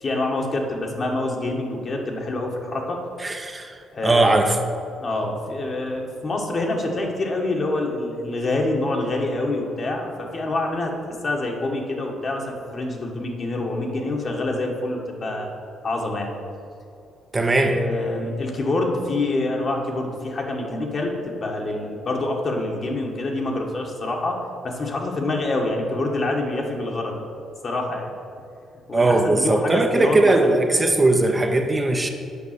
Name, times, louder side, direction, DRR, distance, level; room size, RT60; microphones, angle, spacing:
voice 1, 0.0-3.0 3.9-4.6 5.0-10.9 11.2-15.5 15.8-16.3 17.6-27.1 27.6-28.1 28.9-30.6, left 2 dB, 45° left, 0 dB, 1.6 m, -26 dB
voice 2, 3.2-3.7 4.0-4.6 17.3-17.8 28.9-32.1, right 2 dB, 25° right, 4 dB, 0.8 m, -19 dB
7.0 x 5.4 x 6.8 m, 2.6 s
supercardioid pair, 65°, 0 cm